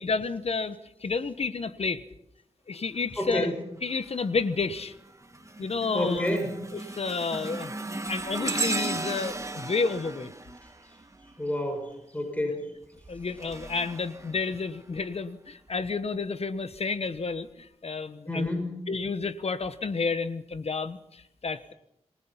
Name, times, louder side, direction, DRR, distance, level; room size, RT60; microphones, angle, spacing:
voice 1, 0.0-2.0 2.7-3.5 3.8-4.9 5.6-6.3 6.7-7.7 8.1-10.3 13.1-18.5 18.9-21.7, left 4 dB, 60° left, 12 dB, 1.2 m, -30 dB
voice 2, 3.2-3.5 5.9-6.5 11.4-12.7 18.3-18.8, left 1 dB, 10° left, 4 dB, 5.8 m, -29 dB
sound 1, 3.9-4.3 4.8-11.6 12.8-15.0 15.7-15.9 16.8-16.9, right 2 dB, 25° right, 1.6 m, -36 dB
26.5 x 18.5 x 5.7 m, 0.79 s
wide cardioid pair, 70°, 12 cm